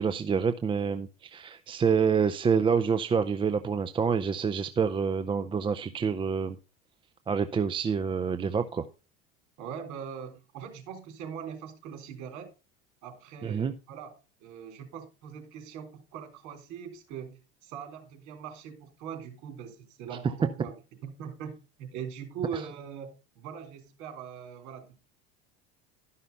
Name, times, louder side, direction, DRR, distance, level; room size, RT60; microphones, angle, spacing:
voice 1, 0.0-6.6 7.3-8.9 13.4-13.7, right 6 dB, 15° right, 10 dB, 0.4 m, -27 dB
voice 2, 9.6-12.5 13.0-14.1 14.4-20.7 21.0-25.0, right 7 dB, 60° right, 5 dB, 3.6 m, -41 dB
12.5 x 5.7 x 5.3 m, 0.32 s
supercardioid pair, 120°, 33 cm